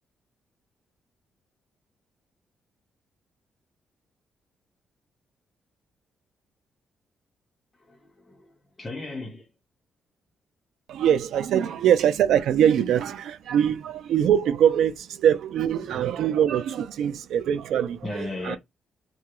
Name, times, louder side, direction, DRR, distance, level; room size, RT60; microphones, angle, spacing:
voice 1, 7.9-8.5 8.8-9.5 13.7-13.8 15.9-16.0 18.0-18.6, left 2 dB, 15° left, 0.6 m, -36 dB
voice 2, 10.9-18.6, right 9 dB, 80° right, 0.4 m, -23 dB
2.9 x 2.3 x 3.0 m
cardioid pair, 135°, 0 cm